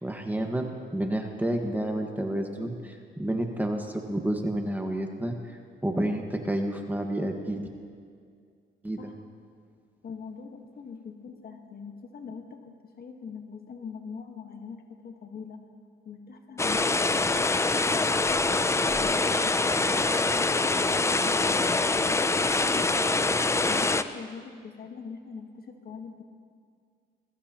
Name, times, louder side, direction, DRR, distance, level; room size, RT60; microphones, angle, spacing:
voice 1, 0.0-5.3 5.8-7.6 8.8-9.1, right 1 dB, 10° right, 3 dB, 1.5 m, -30 dB
voice 2, 10.0-15.6 16.0-17.2 17.7-19.8 20.2-26.2, left 5 dB, 50° left, 4 dB, 1.4 m, -43 dB
sound 1, 16.6-24.0, left 3 dB, 15° left, 0.5 m, -24 dB
21.0 x 14.0 x 3.0 m, 2.2 s
cardioid pair, 90°, 20 cm